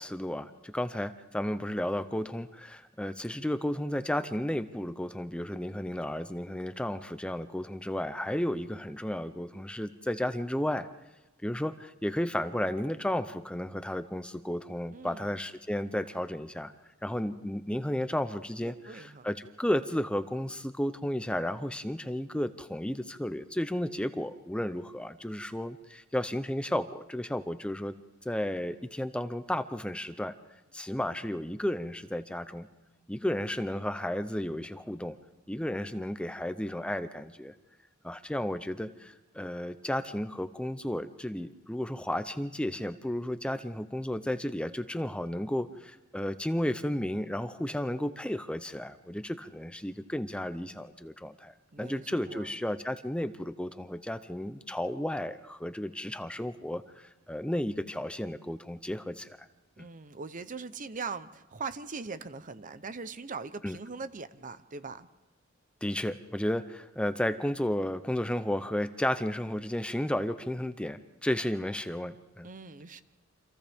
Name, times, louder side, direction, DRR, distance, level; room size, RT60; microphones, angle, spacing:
voice 1, 0.0-10.9 11.4-16.7 17.0-27.9 28.2-30.3 30.7-32.7 33.1-35.2 35.5-37.5 38.0-59.5 59.8-59.9 63.6-63.8 65.8-72.5, left 1 dB, 5° left, 10 dB, 0.6 m, -33 dB
voice 2, 14.9-15.3 18.6-19.3 51.7-52.5 59.8-65.1 72.4-73.0, right 4 dB, 40° right, 12 dB, 0.8 m, -41 dB
29.0 x 26.5 x 3.6 m, 1.1 s
head